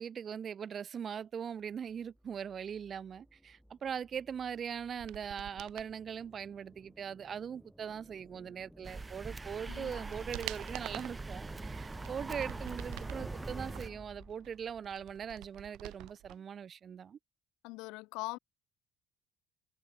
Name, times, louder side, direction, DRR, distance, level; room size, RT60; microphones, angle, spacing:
voice 1, 0.0-17.2, right 7 dB, 45° right, 0.8 m, -41 dB
sound 1, 1.9-14.8, equal, ahead, 7.2 m, -53 dB
sound 2, 4.9-5.9 9.0-9.1 9.6-11.2 11.8-13.3 13.7-16.4 16.6-16.7, right 19 dB, 70° right, 1.2 m, -47 dB
sound 3, 8.8-13.9, right 3 dB, 25° right, 3.2 m, -43 dB
voice 2, 9.7-10.0 17.6-18.4, left 24 dB, 75° left, 2.4 m, -41 dB
hypercardioid pair, 60°, 0 cm